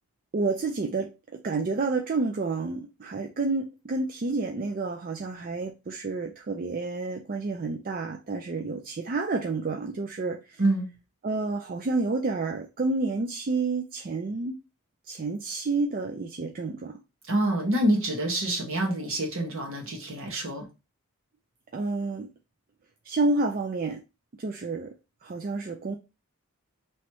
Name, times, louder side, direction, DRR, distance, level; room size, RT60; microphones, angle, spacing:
voice 1, 0.3-10.6 11.2-14.6 15.0-17.0 21.7-22.3 23.0-24.0 24.4-24.9 25.2-26.0, right 3 dB, 40° right, 0.4 m, -29 dB
voice 2, 17.3-20.6, right 1 dB, 65° right, 1.4 m, -26 dB
3.1 x 2.9 x 4.6 m
head